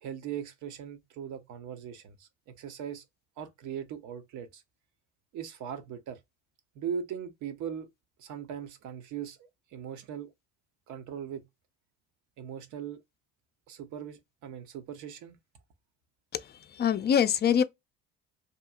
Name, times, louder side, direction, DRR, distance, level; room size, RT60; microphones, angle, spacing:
voice 1, 0.0-3.1 3.4-4.6 5.3-6.2 6.7-7.9 8.2-10.3 10.9-11.4 12.4-13.0 13.7-15.4, right 8 dB, 60° right, 0.8 m, -39 dB
voice 2, 16.3-17.6, left 8 dB, 30° left, 0.5 m, -25 dB
2.9 x 2.6 x 2.4 m
hypercardioid pair, 60°, 34 cm